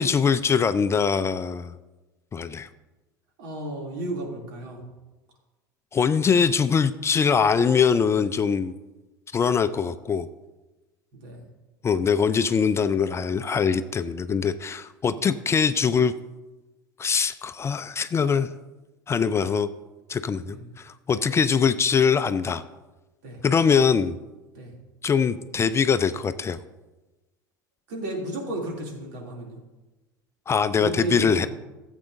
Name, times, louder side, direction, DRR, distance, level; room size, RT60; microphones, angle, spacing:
voice 1, 0.0-1.7 2.3-2.7 5.9-8.7 9.3-10.3 11.8-16.1 17.0-18.5 19.1-19.7 20.1-22.6 23.4-24.2 25.0-26.6 30.5-31.5, left 6 dB, 25° left, 12 dB, 0.4 m, -22 dB
voice 2, 3.4-4.8 9.5-9.7 11.1-11.4 15.0-15.3 20.5-20.7 21.1-21.3 23.2-23.4 24.5-24.7 27.9-29.6 30.8-31.5, right 2 dB, 65° right, 0 dB, 2.7 m, -33 dB
15.0 x 8.1 x 2.6 m, 1.1 s
hypercardioid pair, 80°, 11 cm